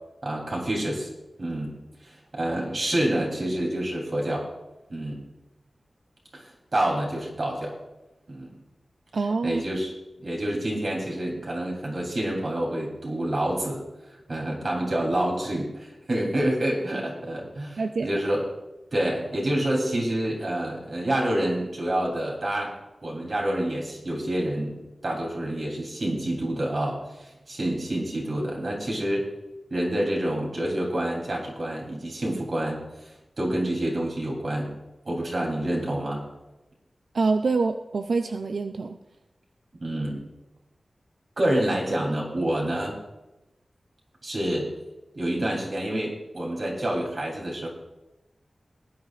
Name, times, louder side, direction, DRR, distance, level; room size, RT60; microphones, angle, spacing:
voice 1, 0.2-1.1 1.4-1.7 2.0-4.5 4.9-5.2 6.3-7.8 8.3-8.5 9.4-9.9 10.2-13.8 14.3-18.5 18.9-22.7 23.0-29.3 29.7-34.7 35.0-36.2 39.7-40.2 41.4-43.0 44.2-44.7 45.1-47.7, right 1 dB, 55° right, -2 dB, 3.2 m, -28 dB
voice 2, 9.1-9.6 17.8-18.2 37.1-39.0, right 4 dB, 80° right, 7 dB, 0.4 m, -26 dB
19.5 x 9.7 x 2.5 m, 0.99 s
wide cardioid pair, 95°, 0 cm